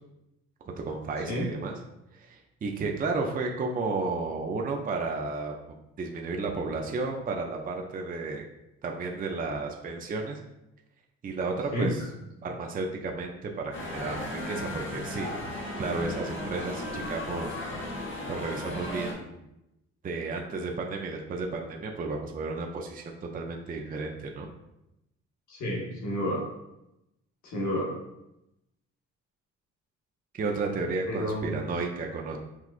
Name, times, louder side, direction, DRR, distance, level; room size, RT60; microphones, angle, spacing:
voice 1, 0.6-1.8 2.1-5.6 6.0-8.5 8.8-10.4 11.2-12.1 12.4-15.3 15.8-17.6 18.3-19.4 20.0-24.5 30.3-32.4, right 3 dB, 30° right, 1 dB, 0.5 m, -33 dB
sound 1, 13.7-19.1, left 1 dB, 40° left, 1.1 m, -35 dB
voice 2, 25.5-26.5 27.4-27.9 31.0-31.5, equal, 70° left, -3 dB, 1.4 m, -30 dB
5.9 x 2.3 x 2.4 m, 0.88 s
cardioid pair, 90°, 30 cm